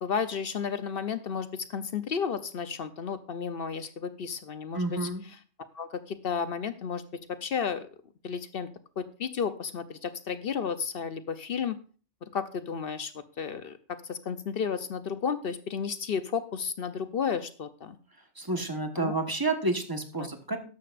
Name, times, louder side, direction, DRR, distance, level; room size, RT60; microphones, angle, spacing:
voice 1, 0.0-5.1 5.7-7.9 8.2-8.7 9.0-11.8 12.3-13.8 14.0-18.0 19.0-19.2 20.2-20.3, left 6 dB, 55° left, 11 dB, 0.8 m, -32 dB
voice 2, 4.7-5.2 18.4-20.6, right 2 dB, 20° right, 5 dB, 1.3 m, -30 dB
13.5 x 11.0 x 2.5 m, 0.39 s
omnidirectional pair, 1.2 m